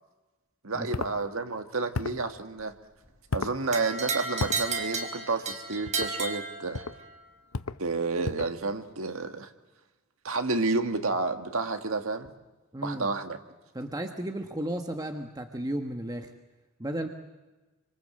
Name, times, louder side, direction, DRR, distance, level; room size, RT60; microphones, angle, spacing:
voice 1, 0.6-2.8 3.3-6.9 7.8-9.5 10.2-12.3 12.8-13.4, right 3 dB, 70° right, 7 dB, 1.8 m, -30 dB
sound 1, 0.9-1.2 1.9-2.3 3.3-3.6 4.4-4.6 5.9-6.1 6.7-7.0 7.5-7.8 8.2-8.6, left 4 dB, 80° left, 0.8 m, -33 dB
sound 2, 3.7-7.1, right 4 dB, 35° right, 3.8 m, -33 dB
voice 2, 12.7-13.1 13.7-16.3 16.8-17.1, right 1 dB, 20° right, 4 dB, 1.4 m, -34 dB
27.0 x 25.5 x 7.8 m, 1.2 s
head